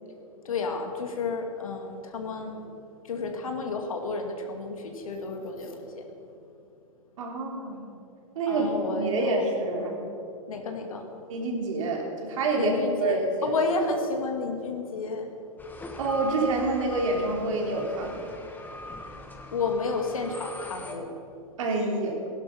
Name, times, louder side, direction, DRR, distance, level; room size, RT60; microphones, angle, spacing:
voice 1, 0.4-2.6 3.1-6.1 8.5-9.5 10.5-11.1 12.5-15.3 19.1-19.2 19.5-21.1, left 3 dB, 80° left, 4 dB, 2.3 m, -31 dB
voice 2, 7.2-7.9 8.4-8.7 9.0-10.0 11.3-13.6 16.0-18.3 21.6-22.2, right 3 dB, 65° right, 0 dB, 3.5 m, -27 dB
sound 1, 15.6-20.9, left 1 dB, 10° left, 1.6 m, -40 dB
16.0 x 11.5 x 5.7 m, 2.6 s
hypercardioid pair, 115°, 18 cm